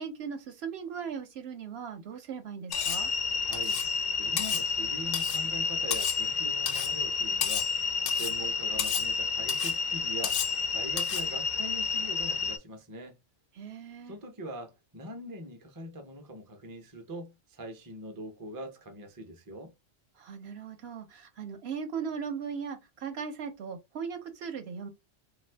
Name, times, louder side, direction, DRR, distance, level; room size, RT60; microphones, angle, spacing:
voice 1, 0.0-3.1 13.5-14.2 20.2-24.9, right 6 dB, 65° right, 0.8 m, -38 dB
Cutlery silverware, 2.7-3.1 3.5-3.9 4.4-4.7 5.1-5.4 5.9-6.3 6.7-6.9 7.4-7.8 8.1-8.4 8.8-9.1 9.5-9.8 10.2-10.6 11.0-11.3, left 9 dB, 85° left, 0.9 m, -33 dB
sound 1, 2.7-12.6, left 4 dB, 65° left, 0.4 m, -30 dB
voice 2, 3.5-3.8 4.2-13.1 14.1-19.7, right 1 dB, 30° right, 0.4 m, -42 dB
2.6 x 2.4 x 3.2 m
omnidirectional pair, 1.3 m